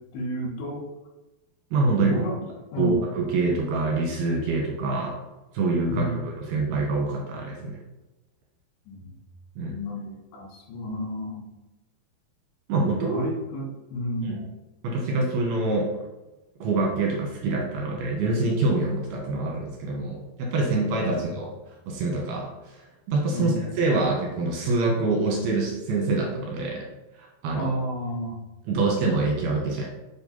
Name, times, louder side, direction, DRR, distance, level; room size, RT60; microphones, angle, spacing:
voice 1, 0.1-0.8 2.0-2.3 2.7-3.0 5.9-6.2 8.9-9.1 9.7-11.4 13.1-14.5 21.1-21.4 23.3-23.6 27.6-28.4, equal, 85° left, -1 dB, 4.1 m, -31 dB
voice 2, 1.7-2.1 2.8-5.1 5.5-7.8 9.6-9.8 12.7-13.2 14.2-14.4 14.8-15.9 16.6-21.5 21.9-22.5 23.1-26.8 27.2-27.7 28.7-29.9, right 3 dB, 70° right, -1 dB, 3.0 m, -25 dB
7.7 x 4.5 x 5.6 m, 1.0 s
omnidirectional pair, 5.4 m